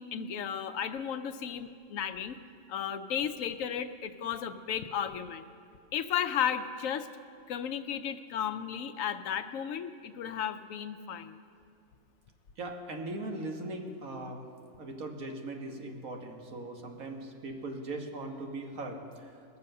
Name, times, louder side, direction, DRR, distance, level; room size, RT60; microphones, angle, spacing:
voice 1, 0.0-2.4 2.7-5.5 5.9-7.1 7.5-11.4, left 8 dB, 75° left, 11 dB, 1.0 m, -34 dB
voice 2, 12.6-14.4 14.8-19.3, right 2 dB, 85° right, 2 dB, 1.8 m, -39 dB
20.5 x 7.1 x 6.5 m, 2.4 s
omnidirectional pair, 1.4 m